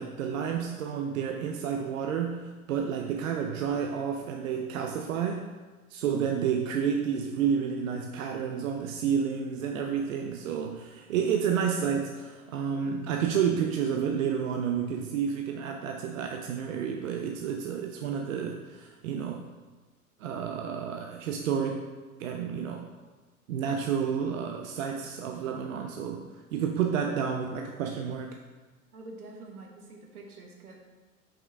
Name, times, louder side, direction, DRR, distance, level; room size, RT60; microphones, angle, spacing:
voice 1, 0.0-5.5 5.9-19.5 20.2-21.9 22.2-22.9 23.5-28.4, right 7 dB, 65° right, 3 dB, 0.6 m, -30 dB
voice 2, 28.9-30.8, right 2 dB, 80° right, 1 dB, 1.3 m, -46 dB
5.8 x 5.1 x 3.4 m, 1.3 s
hypercardioid pair, 100°, 44 cm